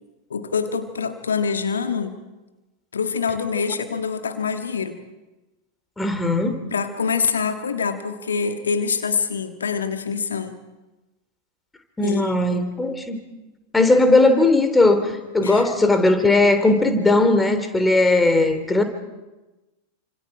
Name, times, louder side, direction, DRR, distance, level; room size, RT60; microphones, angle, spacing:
voice 1, 0.3-2.2 2.9-5.0 6.7-10.6 12.0-12.7 15.4-15.7, left 5 dB, 70° left, 7 dB, 1.7 m, -25 dB
voice 2, 6.0-6.6 12.0-13.2 13.7-18.8, left 2 dB, 10° left, 8 dB, 3.0 m, -18 dB
29.0 x 26.5 x 4.8 m, 1.1 s
figure-of-eight pair, 90°, 0 cm